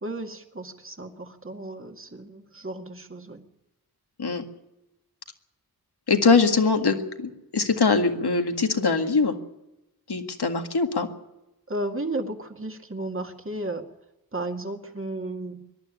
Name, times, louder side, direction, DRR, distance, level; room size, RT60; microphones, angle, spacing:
voice 1, 0.0-3.4 11.7-13.8 14.3-15.6, right 2 dB, 35° right, 4 dB, 2.1 m, -34 dB
voice 2, 6.1-9.4 10.1-11.1, left 4 dB, 85° left, 5 dB, 1.9 m, -22 dB
22.5 x 12.0 x 9.9 m, 0.95 s
wide cardioid pair, 60°, 38 cm